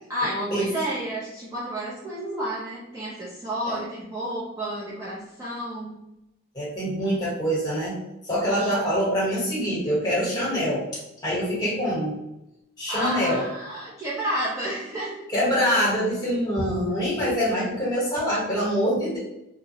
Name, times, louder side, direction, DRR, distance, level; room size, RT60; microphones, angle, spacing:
voice 1, 0.1-6.0 12.9-15.2, right 1 dB, 15° right, -8 dB, 0.5 m, -30 dB
voice 2, 6.5-8.0 8.2-10.8 11.2-12.2 12.8-13.4 15.3-19.2, equal, 20° left, -7 dB, 1.0 m, -25 dB
2.8 x 2.1 x 2.7 m, 0.89 s
head